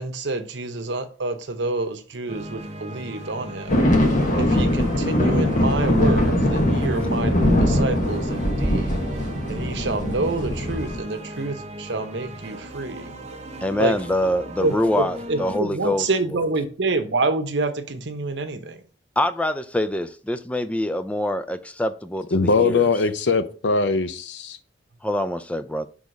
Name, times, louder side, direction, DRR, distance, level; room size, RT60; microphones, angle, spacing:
voice 1, 0.0-3.8 4.4-7.3 7.6-9.0 9.5-13.1 13.8-13.9 14.6-14.8 15.3-18.8, right 3 dB, 75° right, 0.9 m, -27 dB
sound 1, 2.3-15.6, right 1 dB, 40° right, 0.9 m, -37 dB
sound 2, 3.7-11.0, left 1 dB, 45° left, 1.4 m, -21 dB
voice 2, 13.6-16.4 19.2-22.9 25.0-25.9, left 1 dB, 5° left, 0.3 m, -25 dB
voice 3, 22.3-24.6, left 4 dB, 70° left, 0.6 m, -21 dB
6.3 x 3.5 x 5.2 m
head